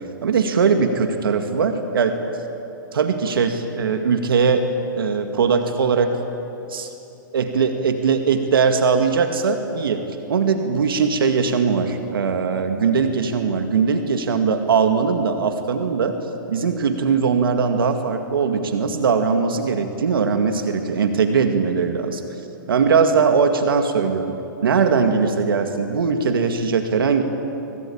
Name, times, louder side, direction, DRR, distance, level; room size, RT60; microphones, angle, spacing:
voice 1, 0.2-2.2 2.9-4.6 5.0-6.1 6.7-6.9 7.3-10.0 10.3-16.2 16.5-22.2 22.7-24.4 24.6-27.2, right 5 dB, 85° right, 6 dB, 2.1 m, -20 dB
23.5 x 22.0 x 8.7 m, 3.0 s
hypercardioid pair, 145°, 12 cm